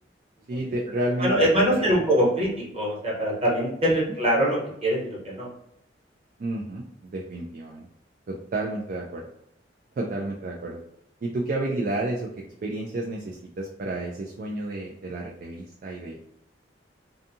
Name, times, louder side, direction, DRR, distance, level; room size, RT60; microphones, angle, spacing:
voice 1, 0.5-2.0 6.4-7.9 8.3-9.3 10.0-10.8 11.2-12.3 12.6-16.2, right 1 dB, 50° right, -1 dB, 0.3 m, -31 dB
voice 2, 1.2-5.5, equal, 35° right, -5 dB, 1.1 m, -23 dB
2.6 x 2.3 x 2.7 m, 0.77 s
head